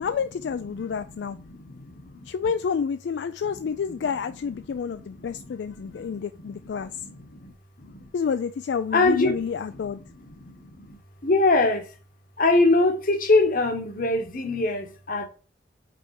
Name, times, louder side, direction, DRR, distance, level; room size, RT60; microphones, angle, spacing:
voice 1, 0.0-1.4 2.3-6.9 8.1-10.0, left 6 dB, 75° left, 0.3 m, -29 dB
voice 2, 1.3-2.1 3.5-3.6 4.9-5.5 5.9-6.1 6.8-7.5 7.8-8.0 8.9-9.4 9.7-9.8 10.3-11.8 12.4-15.3, left 2 dB, 55° left, 1.2 m, -24 dB
5.4 x 4.2 x 4.7 m
head